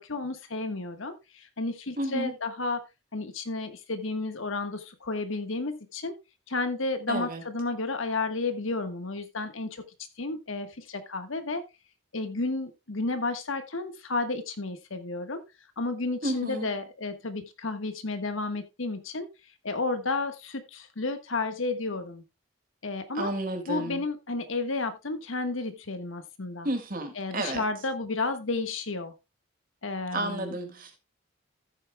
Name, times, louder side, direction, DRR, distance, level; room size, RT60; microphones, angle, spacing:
voice 1, 0.0-2.8 3.1-6.2 6.5-9.8 10.2-11.7 12.1-15.4 15.8-19.3 19.6-22.2 22.8-23.3 23.7-26.7 27.2-29.1 29.8-30.5, left 3 dB, 75° left, 9 dB, 1.3 m, -32 dB
voice 2, 2.0-2.3 7.1-7.4 16.2-16.7 23.1-24.0 26.6-27.6 30.1-31.0, right 1 dB, 45° right, 5 dB, 2.2 m, -32 dB
14.5 x 8.6 x 2.2 m, 0.24 s
head